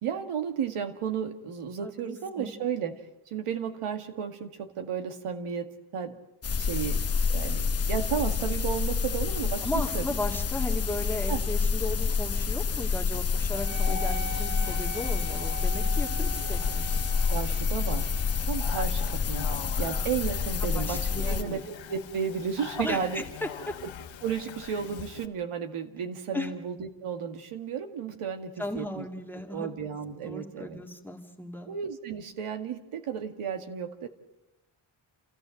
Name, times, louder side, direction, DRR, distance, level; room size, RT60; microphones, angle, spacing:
voice 1, 0.0-2.9 3.3-6.1 6.6-7.0 7.3-10.1 11.3-11.4 17.3-18.1 18.5-23.2 24.2-29.1 29.5-30.8 31.7-34.1, right 7 dB, 90° right, 7 dB, 2.1 m, -33 dB
voice 2, 1.8-2.6 9.6-17.0 20.6-21.6 22.8-23.8 26.3-26.5 28.6-29.7 30.2-31.7, left 1 dB, 5° left, 1 dB, 1.8 m, -36 dB
sound 1, 6.4-21.4, left 5 dB, 30° left, 0.9 m, -28 dB
Speech, 13.3-25.3, left 9 dB, 65° left, 1.3 m, -43 dB
Wind instrument woodwind instrument, 13.5-22.5, equal, 20° right, 1.0 m, -43 dB
28.5 x 15.0 x 7.7 m, 1.0 s
wide cardioid pair, 180°, 50 cm